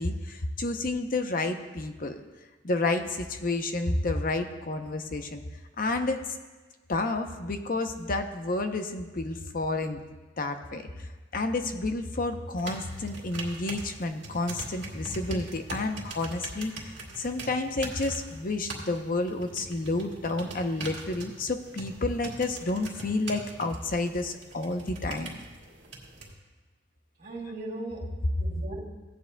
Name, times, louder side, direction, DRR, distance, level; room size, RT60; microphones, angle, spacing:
voice 1, 0.0-2.2 2.6-5.4 5.8-6.2 6.9-10.0 10.4-25.4, left 2 dB, 50° left, 6 dB, 0.7 m, -30 dB
sound 1, 12.6-26.3, right 2 dB, 70° right, 2.1 m, -42 dB
voice 2, 27.2-28.8, right 2 dB, 55° right, -4 dB, 2.7 m, -38 dB
17.0 x 9.6 x 2.3 m, 1.2 s
head